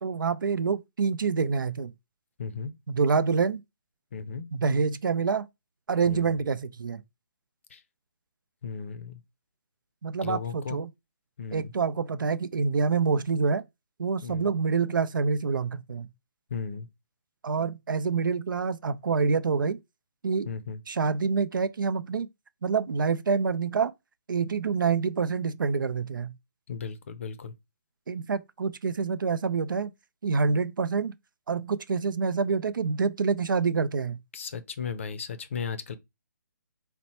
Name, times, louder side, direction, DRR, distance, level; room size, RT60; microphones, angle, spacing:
voice 1, 0.0-1.9 2.9-3.6 4.5-5.5 5.9-7.0 10.0-10.9 11.5-13.6 14.0-16.1 17.4-19.8 20.2-20.5 20.9-22.3 22.6-23.9 24.3-26.3 28.1-29.9 30.2-31.1 31.5-34.2, right 5 dB, 85° right, 0.5 m, -26 dB
voice 2, 2.4-2.7 4.1-4.5 6.0-6.3 7.7-7.8 8.6-9.2 10.2-10.8 11.4-11.7 14.2-14.5 16.5-16.9 20.5-20.8 26.7-27.5 34.3-35.9, left 6 dB, 40° left, 0.5 m, -35 dB
4.3 x 2.1 x 4.1 m
hypercardioid pair, 170°, 11 cm